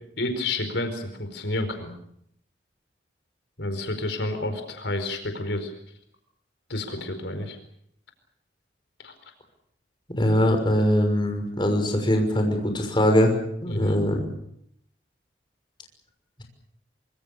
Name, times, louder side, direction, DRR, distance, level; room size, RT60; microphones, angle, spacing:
voice 1, 0.2-1.9 3.6-5.7 6.7-7.6 9.0-9.1 13.6-14.0, left 2 dB, 80° left, 7 dB, 4.7 m, -30 dB
voice 2, 10.2-13.3 13.6-14.2, equal, 25° left, 4 dB, 6.1 m, -22 dB
26.0 x 24.5 x 6.8 m, 0.72 s
head